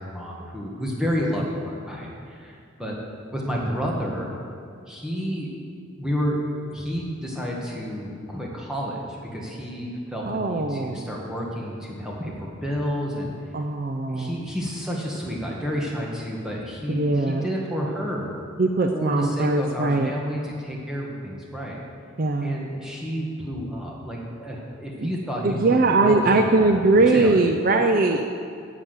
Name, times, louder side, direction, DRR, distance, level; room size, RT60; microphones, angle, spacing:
voice 1, 0.0-3.0 3.3-4.3 4.9-5.5 6.0-13.3 14.1-18.3 18.9-21.8 22.4-26.8 27.1-27.4, equal, 5° right, -4 dB, 1.7 m, -30 dB
voice 2, 10.2-11.1 13.5-14.4 16.9-17.4 18.6-20.1 22.2-22.5 25.0-25.1 25.4-28.3, right 2 dB, 45° right, 5 dB, 0.5 m, -21 dB
10.0 x 7.4 x 8.1 m, 2.4 s
head